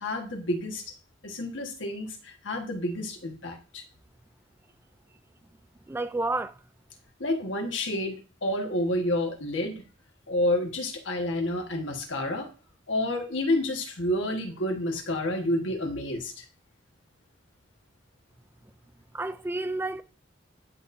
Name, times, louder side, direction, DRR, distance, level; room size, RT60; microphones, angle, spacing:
voice 1, 0.0-0.8 1.2-3.8 7.2-9.8 10.3-12.5 12.9-16.4, left 1 dB, 80° left, 1.5 m, -29 dB
voice 2, 5.9-6.6 19.1-20.0, right 2 dB, 10° right, 0.3 m, -30 dB
10.5 x 4.3 x 2.6 m
head